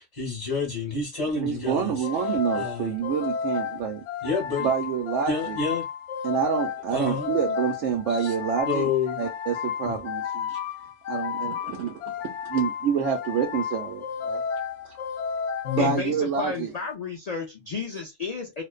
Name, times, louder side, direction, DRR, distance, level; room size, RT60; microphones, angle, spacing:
voice 1, 0.0-3.0 4.2-4.7 5.3-5.9 6.9-7.3 8.1-8.3 8.7-9.2 9.8-9.9 10.5-10.6, left 4 dB, 35° left, 0.9 m, -29 dB
voice 2, 1.4-4.0 4.6-5.6 6.2-8.9 9.2-10.5 11.1-11.9 12.4-14.4 14.8-14.9 15.7-16.7, right 7 dB, 80° right, 0.9 m, -27 dB
sound 1, 2.0-16.6, left 7 dB, 70° left, 0.9 m, -32 dB
voice 3, 15.8-18.6, left 5 dB, 85° left, 0.3 m, -32 dB
2.5 x 2.2 x 2.3 m
omnidirectional pair, 1.3 m